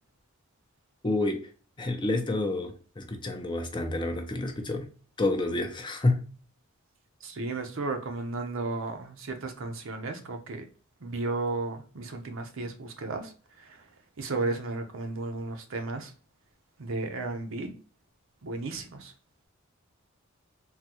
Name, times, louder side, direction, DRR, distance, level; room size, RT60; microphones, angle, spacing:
voice 1, 1.0-1.5 1.8-4.9 5.2-6.2, left 2 dB, 25° left, 0.6 m, -29 dB
voice 2, 7.2-10.6 11.0-13.9 14.2-16.1 16.8-17.7 18.4-19.1, right 3 dB, 70° right, 0.7 m, -34 dB
3.7 x 2.2 x 2.8 m
head